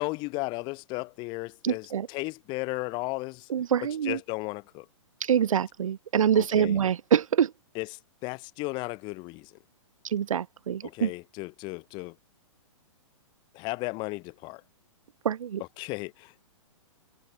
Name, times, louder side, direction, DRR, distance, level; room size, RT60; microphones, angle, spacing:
voice 1, 0.0-3.5 4.0-4.9 6.3-6.8 7.7-9.5 10.8-12.1 13.5-14.6 15.6-16.4, left 25 dB, 30° left, 0.8 m, -35 dB
voice 2, 1.6-2.1 3.5-4.2 5.3-7.5 10.1-11.1 15.2-15.6, right 8 dB, 90° right, 0.7 m, -25 dB
hypercardioid pair, 145°, 17 cm